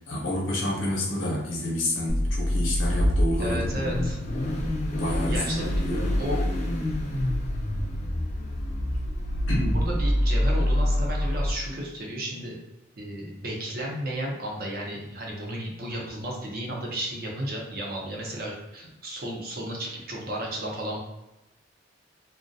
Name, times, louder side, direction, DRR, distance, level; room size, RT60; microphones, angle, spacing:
voice 1, 0.1-4.1 4.9-6.2 9.5-9.8, left 1 dB, 85° left, -5 dB, 0.7 m, -29 dB
Car / Idling / Accelerating revving vroom, 2.1-11.5, equal, 35° left, 0.4 m, -26 dB
voice 2, 3.4-4.2 5.3-5.8 6.2-6.4 9.7-12.6 13.0-21.0, right 1 dB, 50° right, -2 dB, 0.6 m, -33 dB
2.3 x 2.1 x 2.6 m, 0.94 s
head